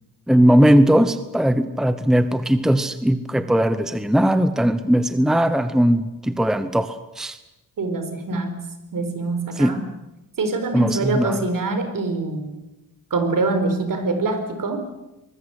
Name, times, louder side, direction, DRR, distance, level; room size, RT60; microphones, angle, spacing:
voice 1, 0.3-7.4 9.6-9.8 10.7-11.5, equal, ahead, 12 dB, 0.9 m, -19 dB
voice 2, 7.8-8.6 8.9-9.8 10.4-12.6 13.1-14.8, right 3 dB, 65° right, 8 dB, 4.5 m, -24 dB
24.5 x 21.0 x 8.2 m, 0.98 s
wide cardioid pair, 140°, 36 cm